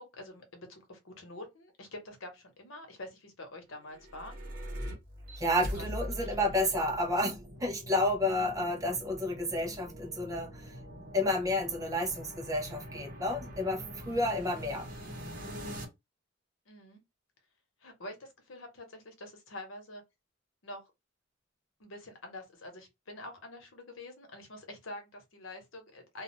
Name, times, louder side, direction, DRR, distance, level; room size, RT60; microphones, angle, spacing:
voice 1, 0.0-4.3 5.6-6.7 16.7-17.0 17.8-20.0 20.6-20.8 21.8-26.2, left 1 dB, 90° left, 1.0 m, -46 dB
sound 1, 3.8-15.8, equal, 45° right, 1.1 m, -43 dB
voice 2, 5.4-10.8 11.1-14.9, left 1 dB, 20° right, 0.6 m, -31 dB
2.4 x 2.3 x 3.0 m
head